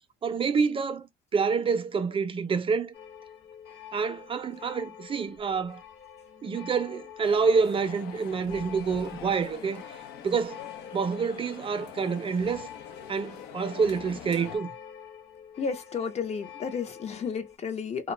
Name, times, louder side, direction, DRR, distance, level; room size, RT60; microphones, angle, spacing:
voice 1, 0.2-1.1 1.3-2.9 3.9-5.8 6.4-10.0 10.2-10.6 10.9-12.7 13.1-14.7, right 5 dB, 30° right, 0.5 m, -27 dB
sound 1, 2.9-17.6, left 8 dB, 60° left, 1.1 m, -47 dB
sound 2, 7.2-14.6, left 8 dB, 85° left, 0.7 m, -44 dB
voice 2, 15.6-18.1, left 6 dB, 40° left, 0.6 m, -32 dB
2.4 x 2.2 x 3.1 m
cardioid pair, 110°, 17 cm